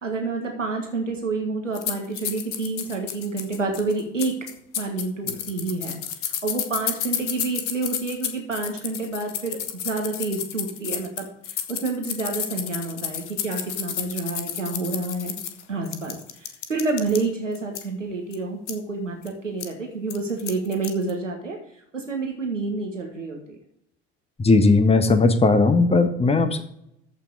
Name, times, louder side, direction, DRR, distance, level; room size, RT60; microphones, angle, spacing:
voice 1, 0.0-4.3 4.8-9.6 9.8-15.3 15.7-21.6 21.9-23.6, right 3 dB, 90° right, 1 dB, 1.7 m, -29 dB
sound 1, 1.7-17.2 17.6-17.8 18.3-18.4 18.7-18.8 19.2-19.3 19.6-19.7 20.1-21.1, left 9 dB, 70° left, 1.2 m, -31 dB
voice 2, 24.4-26.6, left 3 dB, 15° left, 9 dB, 1.4 m, -17 dB
14.0 x 6.0 x 4.8 m, 0.74 s
figure-of-eight pair, 60°, 36 cm